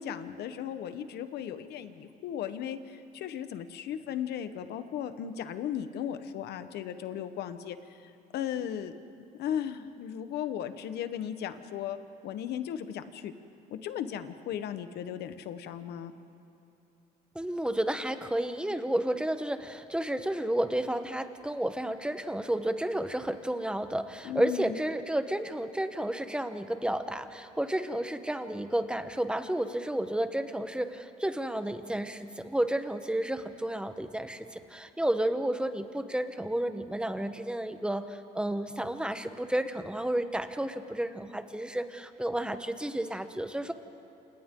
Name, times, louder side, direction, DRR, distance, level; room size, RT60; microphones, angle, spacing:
voice 1, 0.0-8.9 9.3-12.0 12.2-13.3 13.7-16.1 24.2-24.8, left 9 dB, 75° left, 10 dB, 1.2 m, -36 dB
voice 2, 17.3-43.7, right 1 dB, 5° right, 9 dB, 1.1 m, -31 dB
28.5 x 27.5 x 3.8 m, 2.9 s
cardioid pair, 110°, 17 cm